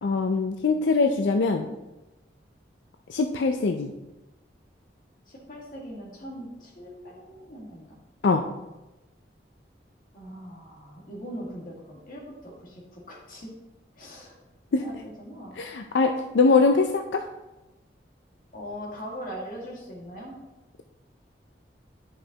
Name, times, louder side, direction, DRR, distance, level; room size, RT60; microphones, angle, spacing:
voice 1, 0.0-1.7 3.1-3.9 8.2-8.5 14.7-14.8 15.6-17.2, left 4 dB, 85° left, 5 dB, 0.4 m, -22 dB
voice 2, 5.3-7.9 10.1-13.5 14.0-14.4 14.8-15.5 18.5-20.3, equal, 50° left, -3 dB, 1.8 m, -40 dB
9.6 x 5.5 x 2.9 m, 1.0 s
head